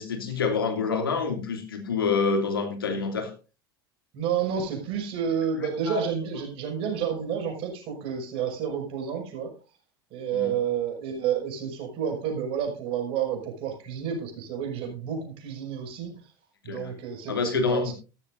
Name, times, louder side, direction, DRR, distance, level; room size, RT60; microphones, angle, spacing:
voice 1, 0.0-3.3 5.6-6.0 10.3-10.5 16.6-16.9 17.3-17.9, left 4 dB, 80° left, 6 dB, 2.6 m, -27 dB
voice 2, 4.1-9.5 10.1-16.3 16.6-17.9, right 8 dB, 50° right, 3 dB, 5.8 m, -30 dB
15.5 x 13.5 x 2.6 m, 0.32 s
figure-of-eight pair, 75°, 12 cm